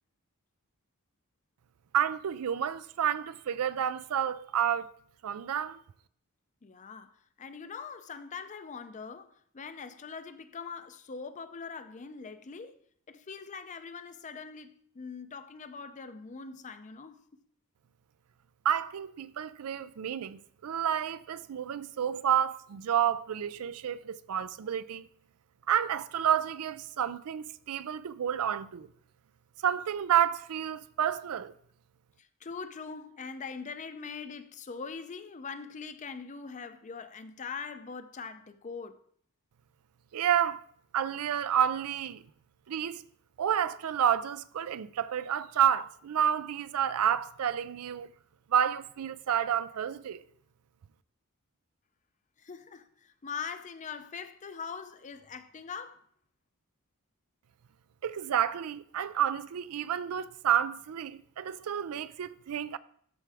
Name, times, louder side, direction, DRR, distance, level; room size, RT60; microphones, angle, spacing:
voice 1, 1.9-4.9 5.2-5.8 18.6-25.1 25.7-28.9 29.6-31.5 40.1-40.6 40.9-42.2 42.7-43.0 43.4-48.1 48.5-50.2 58.0-62.8, right 9 dB, 75° right, 0.4 m, -30 dB
voice 2, 6.6-12.8 13.1-17.2 32.2-39.0 52.4-56.0, left 5 dB, 35° left, 0.5 m, -42 dB
13.0 x 4.6 x 3.4 m
head